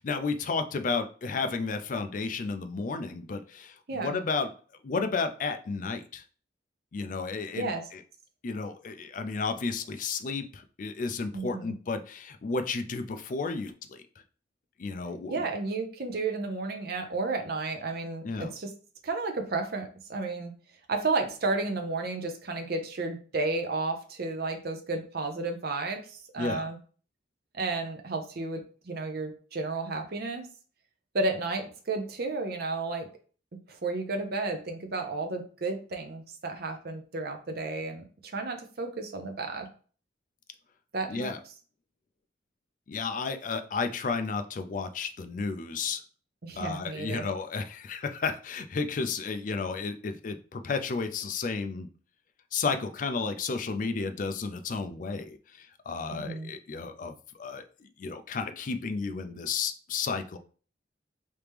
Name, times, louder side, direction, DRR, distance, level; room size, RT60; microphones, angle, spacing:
voice 1, 0.0-4.5 4.8-6.2 6.9-8.0 8.4-14.0 14.8-15.4 18.2-18.5 26.4-26.7 41.1-41.4 42.9-46.0 46.6-51.9 52.5-60.4, left 4 dB, 45° left, 8 dB, 0.4 m, -32 dB
voice 2, 11.3-11.7 15.3-18.7 19.0-20.5 20.9-26.8 27.5-30.5 31.1-33.1 33.7-39.7 40.9-41.3 46.4-47.3 56.1-56.5, right 3 dB, 55° right, 4 dB, 0.6 m, -32 dB
3.2 x 2.9 x 3.4 m, 0.40 s
head